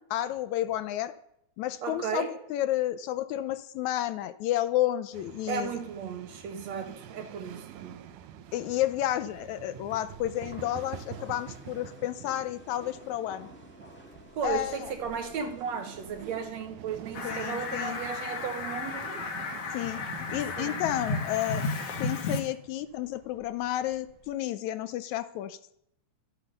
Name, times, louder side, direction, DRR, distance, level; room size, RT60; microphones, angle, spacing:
voice 1, 0.1-1.1 1.6-2.3 2.5-5.7 8.5-13.5 14.4-14.9 17.2-18.0 19.7-20.0 20.3-21.6 22.0-25.6, left 13 dB, 80° left, 1.8 m, -31 dB
voice 2, 1.8-2.3 5.5-8.1 14.4-19.1 20.6-20.8, right 6 dB, 65° right, 2.2 m, -35 dB
sound 1, 5.1-24.4, right 9 dB, 80° right, 2.4 m, -48 dB
sound 2, 10.3-16.4, left 1 dB, 5° left, 0.9 m, -52 dB
Fowl, 17.1-22.4, left 3 dB, 55° left, 2.4 m, -33 dB
13.0 x 9.9 x 6.6 m
omnidirectional pair, 3.6 m